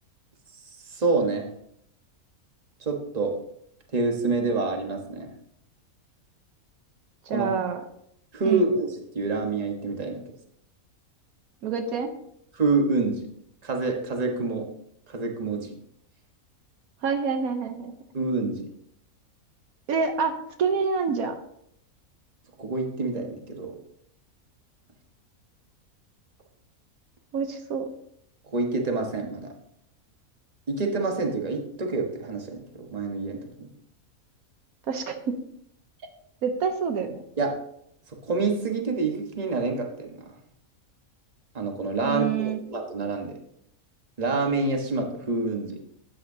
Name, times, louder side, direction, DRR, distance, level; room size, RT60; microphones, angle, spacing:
voice 1, 0.8-1.5 2.8-3.3 3.9-5.3 7.3-7.5 8.3-8.9 9.1-10.2 12.6-13.3 13.6-14.6 15.1-15.7 18.1-18.7 22.6-23.8 28.5-29.5 30.7-33.7 37.4-37.5 38.2-40.3 41.5-43.3 44.2-45.8, right 3 dB, 30° right, 2 dB, 1.4 m, -27 dB
voice 2, 7.3-7.8 8.4-8.6 11.6-12.1 17.0-17.9 19.9-21.3 27.3-27.8 34.9-35.4 36.4-37.2 42.0-42.6, right 5 dB, 80° right, 6 dB, 1.3 m, -27 dB
12.5 x 9.0 x 2.8 m, 0.71 s
omnidirectional pair, 1.5 m